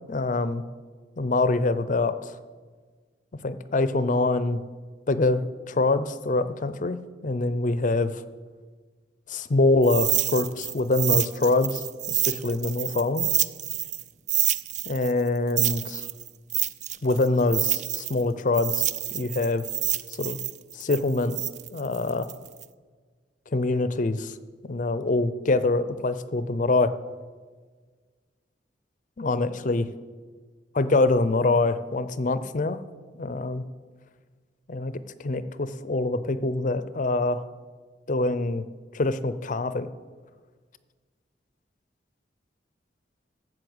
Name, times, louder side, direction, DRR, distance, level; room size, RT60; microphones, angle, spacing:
voice 1, 0.1-0.6 1.2-2.4 3.4-4.6 5.1-5.4 5.7-8.2 9.3-13.3 14.8-16.1 17.0-19.6 20.1-20.4 20.7-21.4 21.7-22.3 23.5-24.3 24.6-26.9 29.2-29.9 30.8-32.8 33.2-33.6 34.7-37.4 38.1-38.6 38.9-39.9, left 2 dB, 45° left, 14 dB, 0.6 m, -25 dB
sound 1, 9.8-14.0 14.3-18.2 18.5-22.6, right 12 dB, 40° right, 0.4 m, -27 dB
13.0 x 7.6 x 7.9 m, 1.5 s
head